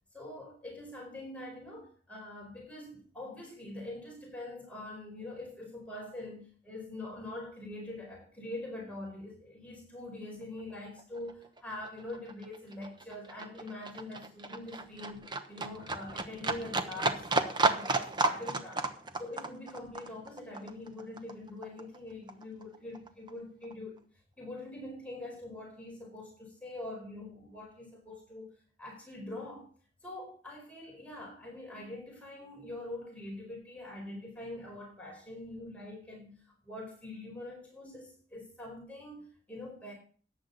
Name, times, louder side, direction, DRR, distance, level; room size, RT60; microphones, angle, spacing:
voice 1, 0.1-18.9 19.2-24.0 24.4-28.5 28.8-29.7 30.0-36.3 36.6-39.9, left 2 dB, 10° left, -2 dB, 4.8 m, -44 dB
Livestock farm animals working animals, 10.6-10.7 11.0-22.0 22.3-23.3 23.6-23.7, right 3 dB, 25° right, 1.1 m, -33 dB
14.5 x 9.6 x 4.1 m, 0.43 s
head